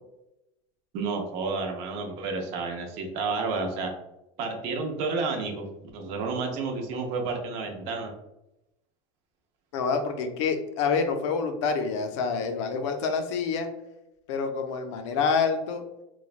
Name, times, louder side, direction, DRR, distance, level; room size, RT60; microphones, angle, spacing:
voice 1, 0.9-3.9 4.4-8.1, right 4 dB, 40° right, 3 dB, 0.5 m, -31 dB
voice 2, 9.7-13.7 14.3-15.8, left 5 dB, 75° left, 6 dB, 0.5 m, -27 dB
3.1 x 2.2 x 2.4 m, 0.89 s
supercardioid pair, 170°, 16 cm